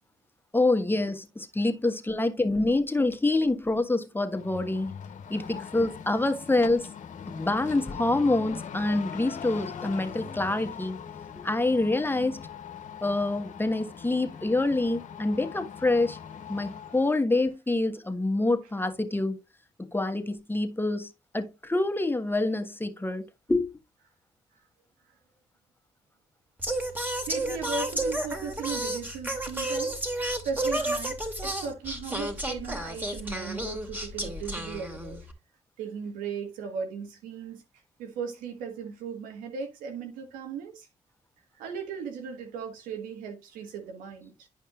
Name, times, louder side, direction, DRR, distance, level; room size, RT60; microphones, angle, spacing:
voice 1, 0.5-4.9 5.3-6.9 7.3-11.0 11.4-12.5 13.0-16.2 16.5-19.4 19.8-23.7, left 2 dB, 15° left, 1.5 m, -26 dB
sound 1, 4.3-17.1, left 7 dB, 65° left, 0.9 m, -41 dB
voice 2, 16.5-17.0 27.3-30.0 30.4-35.2 35.8-37.6 38.0-40.9 41.6-44.5, right 6 dB, 90° right, 1.6 m, -37 dB
Singing, 26.6-35.3, right 1 dB, 15° right, 2.4 m, -32 dB
11.0 x 5.3 x 2.5 m
supercardioid pair, 45°, 14 cm